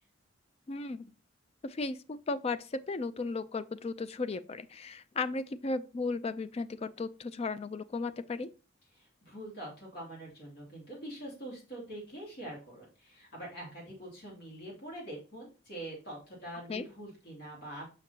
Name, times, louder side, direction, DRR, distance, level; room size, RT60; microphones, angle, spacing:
voice 1, 0.7-1.1 1.6-8.5 16.7-16.8, left 3 dB, 30° left, 0.3 m, -35 dB
voice 2, 8.9-17.8, right 1 dB, 60° left, 2.7 m, -44 dB
6.0 x 5.7 x 2.8 m
head